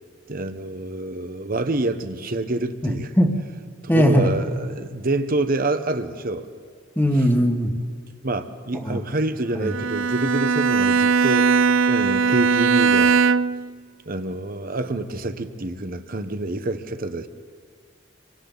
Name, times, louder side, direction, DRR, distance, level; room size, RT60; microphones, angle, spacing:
voice 1, 0.3-3.1 3.9-6.5 7.1-7.3 8.2-11.6 11.9-13.2 14.1-17.3, right 2 dB, 45° right, 9 dB, 1.1 m, -27 dB
voice 2, 2.8-3.3 3.9-4.3 6.9-7.7 8.8-9.0 9.5-9.7, equal, 10° left, 3 dB, 1.7 m, -19 dB
Bowed string instrument, 9.6-13.7, right 5 dB, 75° right, 0.4 m, -19 dB
29.5 x 25.0 x 4.0 m, 2.1 s
head